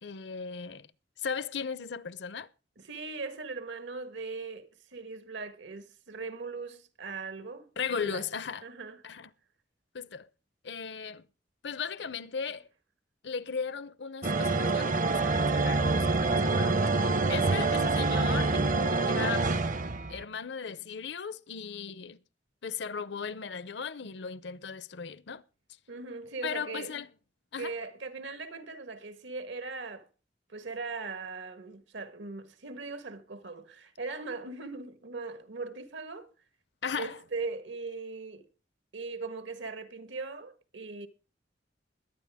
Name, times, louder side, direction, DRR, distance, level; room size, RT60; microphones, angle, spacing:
voice 1, 0.0-0.9 1.2-2.5 7.8-8.7 9.0-9.3 9.9-10.3 10.6-11.2 11.6-12.7 13.2-19.5 20.1-22.2 22.6-25.4 26.4-27.1 27.5-27.7 36.8-37.2, left 6 dB, 70° left, 0.6 m, -37 dB
voice 2, 2.8-7.7 8.0-8.2 8.6-9.0 25.9-26.9 27.6-30.1 30.5-36.3 37.0-38.5 38.9-41.1, right 4 dB, 80° right, 1.5 m, -39 dB
sound 1, 14.2-20.2, right 3 dB, 45° right, 0.7 m, -26 dB
21.5 x 9.2 x 3.5 m
head